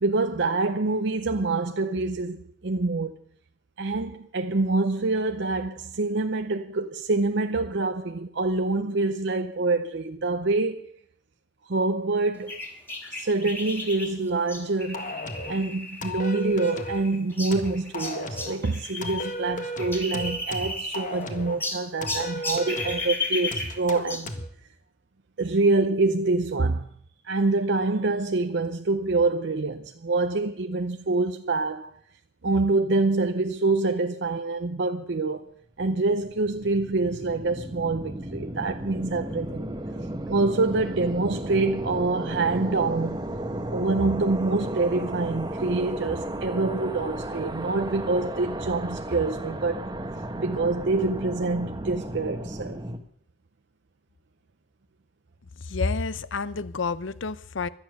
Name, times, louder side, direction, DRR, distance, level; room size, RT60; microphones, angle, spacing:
voice 1, 0.0-3.2 3.8-10.9 11.7-12.6 13.1-15.2 15.5-24.3 25.4-26.9 27.2-31.9 32.4-35.5 35.8-39.7 40.2-43.2 43.7-49.9 50.4-52.8, right 3 dB, 65° right, 0.7 m, -26 dB
sound 1, 12.5-19.3 19.6-21.2 21.6-24.3, left 2 dB, 10° left, 2.3 m, -34 dB
sound 2, 14.9-15.6 16.0-17.1 17.5-18.6 19.0-21.6 22.0-23.1 23.5-24.5, left 1 dB, 45° left, 1.6 m, -34 dB
sound 3, 35.9-53.0, right 1 dB, 20° right, 1.2 m, -34 dB
voice 2, 55.6-57.7, left 4 dB, 80° left, 0.7 m, -29 dB
17.0 x 11.5 x 6.5 m
head